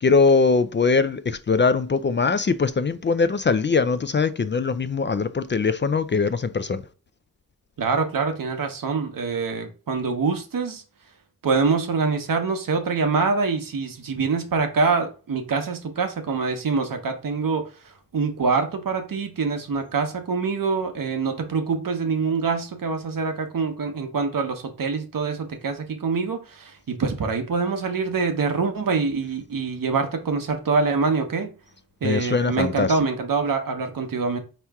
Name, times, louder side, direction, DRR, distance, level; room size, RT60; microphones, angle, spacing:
voice 1, 0.0-6.8 32.0-32.9, left 4 dB, 30° left, 0.4 m, -21 dB
voice 2, 7.8-10.8 11.4-31.5 32.0-34.4, right 4 dB, 65° right, 1.0 m, -25 dB
4.4 x 3.0 x 3.5 m
cardioid pair, 40°, 36 cm